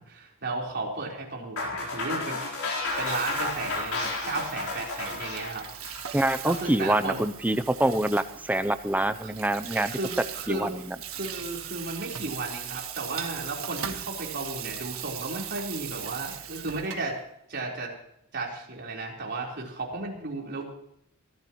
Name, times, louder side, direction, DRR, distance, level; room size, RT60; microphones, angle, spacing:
voice 1, 0.0-2.6 3.0-5.7 6.4-7.2 9.2-9.3 9.9-10.7 11.1-17.2 17.5-17.9 18.3-20.6, right 2 dB, 50° right, -2 dB, 4.2 m, -34 dB
sound 1, 1.6-6.7, left 3 dB, 80° left, 4.2 m, -32 dB
Water tap faucet / Sink (filling or washing), 2.8-17.1, right 9 dB, 75° right, 1.5 m, -39 dB
voice 2, 6.1-9.9 10.5-11.0, right 1 dB, 10° right, 12 dB, 0.6 m, -26 dB
24.5 x 14.5 x 3.1 m, 0.75 s
head